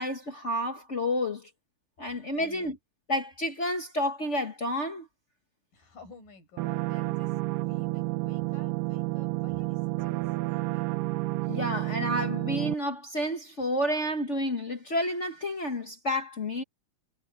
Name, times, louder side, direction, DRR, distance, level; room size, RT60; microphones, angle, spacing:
voice 1, 0.0-1.5 2.0-2.8 3.1-5.1 11.5-16.6, left 1 dB, 45° left, 0.9 m, -30 dB
voice 2, 2.4-2.7 5.7-11.0, left 3 dB, 80° left, 9.4 m, -52 dB
sound 1, 6.6-12.7, right 20 dB, 85° right, 2.3 m, -30 dB
omnidirectional pair, 3.8 m